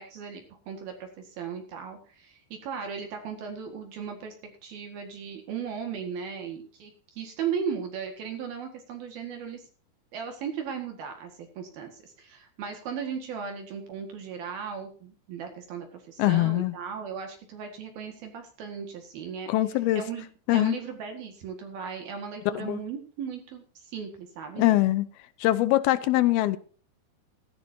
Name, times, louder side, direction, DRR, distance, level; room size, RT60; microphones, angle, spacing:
voice 1, 0.0-4.4 4.6-9.6 10.1-19.5 19.9-20.3 20.5-24.7, right 7 dB, 65° right, 3.5 m, -37 dB
voice 2, 16.2-16.8 19.5-20.0 20.5-20.8 22.5-22.8 24.6-25.1 25.4-26.6, left 16 dB, 75° left, 2.4 m, -23 dB
16.5 x 14.5 x 2.8 m
omnidirectional pair, 4.9 m